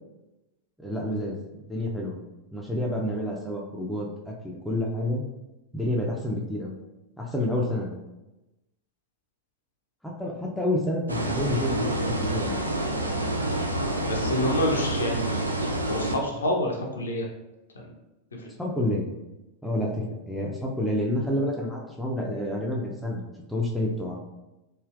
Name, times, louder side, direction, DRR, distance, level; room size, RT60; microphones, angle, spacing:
voice 1, 0.8-2.1 2.5-5.2 5.7-6.7 7.2-8.0 10.0-12.6 18.4-19.1 19.6-24.2, left 1 dB, 5° left, -3 dB, 0.4 m, -29 dB
sound 1, 11.1-16.2, right 1 dB, 80° right, 0.3 m, -28 dB
voice 2, 14.1-15.5 15.9-17.3 17.7-18.0, left 1 dB, 70° left, 1 dB, 0.5 m, -28 dB
3.2 x 2.6 x 2.4 m, 0.99 s
figure-of-eight pair, 90°, 0 cm